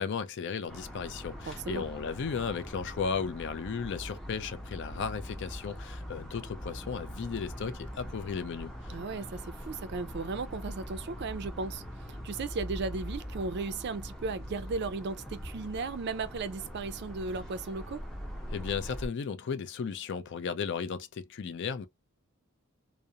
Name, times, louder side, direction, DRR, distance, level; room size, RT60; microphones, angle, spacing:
voice 1, 0.0-8.7 18.5-21.9, left 6 dB, 55° left, 0.4 m, -35 dB
sound 1, 0.7-19.1, equal, 5° left, 0.5 m, -42 dB
voice 2, 1.5-1.9 8.9-11.8 12.2-18.0, right 4 dB, 50° right, 0.4 m, -35 dB
2.4 x 2.0 x 2.7 m
head